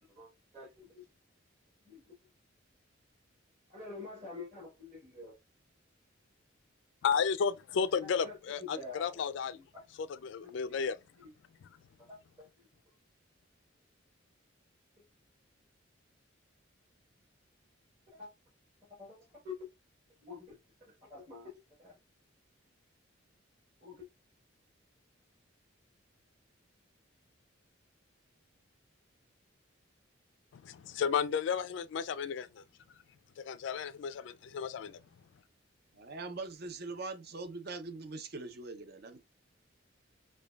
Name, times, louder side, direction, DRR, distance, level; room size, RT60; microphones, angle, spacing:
voice 1, 0.1-1.0 1.8-2.1 3.7-5.4 8.0-9.2 9.5-9.8 10.4-10.8 12.0-12.9 15.0-15.1 18.1-18.3 18.9-19.7 20.2-20.6 20.9-22.0 23.8-24.1, left 4 dB, 35° right, 1.3 m, -48 dB
voice 2, 7.0-9.6 10.0-11.0 30.5-32.6 33.4-35.0, left 6 dB, 65° left, 0.3 m, -33 dB
voice 3, 35.9-39.2, right 3 dB, 50° right, 0.6 m, -42 dB
4.9 x 2.3 x 2.3 m
head